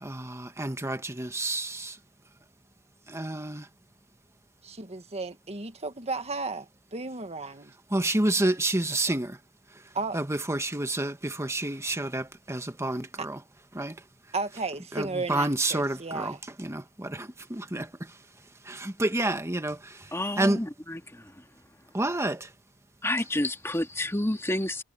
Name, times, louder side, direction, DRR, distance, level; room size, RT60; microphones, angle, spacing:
voice 1, 0.0-2.0 3.1-3.7 7.9-9.4 10.1-13.4 13.7-14.0 14.9-18.1 18.6-20.6 21.9-22.5, right 1 dB, 15° right, 1.5 m, -29 dB
voice 2, 4.6-7.7 9.9-10.2 13.2-13.3 14.3-16.4, right 3 dB, 30° right, 1.9 m, -34 dB
voice 3, 20.1-21.3 23.0-24.8, left 1 dB, 10° left, 2.2 m, -29 dB
head